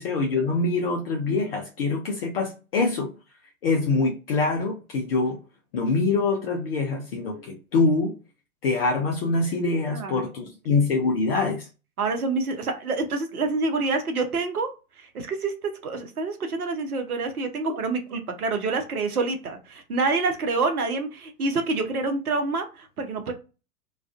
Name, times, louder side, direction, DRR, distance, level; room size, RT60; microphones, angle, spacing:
voice 1, 0.0-3.1 3.6-5.4 5.7-8.2 8.6-11.7, left 3 dB, 45° left, 0.5 m, -24 dB
voice 2, 9.9-10.3 10.7-10.8 12.0-14.7 15.0-23.3, right 3 dB, 75° right, 0.8 m, -27 dB
2.4 x 2.3 x 2.4 m
figure-of-eight pair, 105°, 44 cm